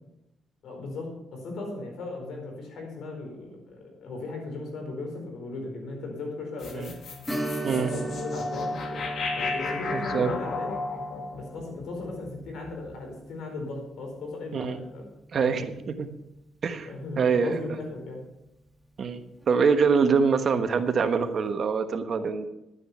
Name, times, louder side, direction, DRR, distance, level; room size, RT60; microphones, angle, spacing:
voice 1, 0.6-6.9 7.7-9.0 9.3-10.7 11.3-15.0 16.9-18.2, left 3 dB, 75° left, 2 dB, 4.7 m, -37 dB
sound 1, 6.6-12.9, left 3 dB, 55° left, 2.0 m, -34 dB
Strum, 7.3-16.5 16.8-16.9 19.4-19.6 20.0-20.1, right 2 dB, ahead, 2.0 m, -39 dB
voice 2, 9.9-10.3 14.5-14.8 15.3-16.1 16.6-16.9 17.2-17.6 19.0-19.2 19.5-22.5, right 5 dB, 50° right, 8 dB, 1.2 m, -24 dB
11.5 x 9.8 x 5.7 m, 0.88 s
cardioid pair, 90°, 0 cm